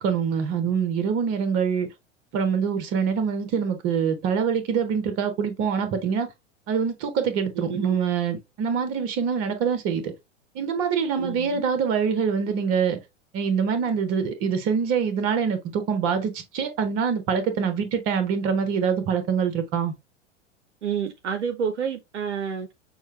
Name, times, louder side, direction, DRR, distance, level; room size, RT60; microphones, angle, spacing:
voice 1, 0.0-1.9 2.3-6.3 6.7-10.1 10.5-13.0 13.3-19.9, right 6 dB, 40° right, 1.2 m, -25 dB
voice 2, 7.6-8.0 11.2-11.6 20.8-22.7, right 7 dB, 70° right, 0.7 m, -29 dB
6.2 x 2.3 x 3.2 m
figure-of-eight pair, 90°, 36 cm